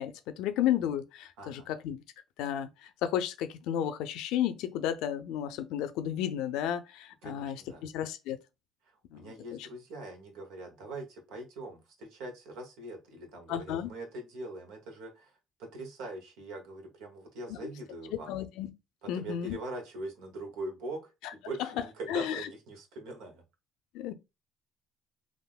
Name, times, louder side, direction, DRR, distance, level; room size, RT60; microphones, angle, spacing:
voice 1, 0.0-2.0 2.4-7.6 7.8-8.4 9.1-9.3 13.5-13.9 17.5-17.7 18.3-18.7 19.1-19.6 22.1-22.4 23.9-24.1, left 10 dB, 80° left, 0.4 m, -32 dB
voice 2, 1.4-1.7 7.2-7.8 8.9-18.4 19.0-23.4, right 2 dB, 85° right, 1.1 m, -42 dB
3.5 x 2.5 x 2.3 m
supercardioid pair, 85°, 0 cm